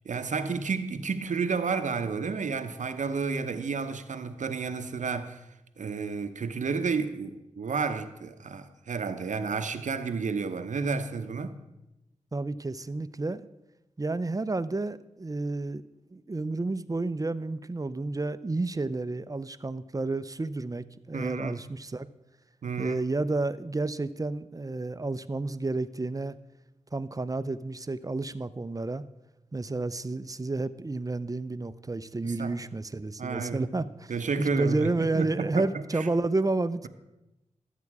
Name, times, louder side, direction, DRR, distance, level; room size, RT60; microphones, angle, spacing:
voice 1, 0.0-5.4 5.8-11.5 21.1-21.6 22.6-23.0 32.2-32.5 33.2-33.6 34.1-36.1, right 5 dB, 75° right, 0.8 m, -31 dB
voice 2, 12.3-13.5 14.0-15.8 16.1-22.1 22.8-26.4 26.9-29.0 29.5-34.1 34.4-36.9, right 2 dB, 25° right, 0.6 m, -31 dB
13.0 x 8.3 x 4.8 m
cardioid pair, 50°, 13 cm